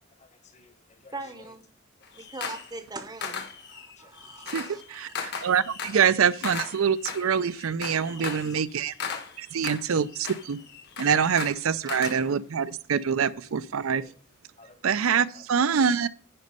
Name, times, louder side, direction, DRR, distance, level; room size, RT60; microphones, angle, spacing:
voice 1, 0.1-1.6 2.0-2.3 4.0-4.8 5.6-6.2 8.0-9.2 10.6-10.7 12.9-13.0 13.3-13.5 13.9-14.2 14.6-15.4 15.9-16.1, left 4 dB, 35° left, 1.1 m, -54 dB
voice 2, 1.1-1.6 2.2-5.0, right 3 dB, 20° right, 0.7 m, -41 dB
sound 1, 2.0-2.7 3.2-12.2, left 6 dB, 55° left, 1.3 m, -37 dB
voice 3, 4.5-8.9 9.5-10.6 11.0-14.0 14.8-16.1, right 7 dB, 80° right, 0.5 m, -25 dB
9.7 x 5.3 x 5.5 m
head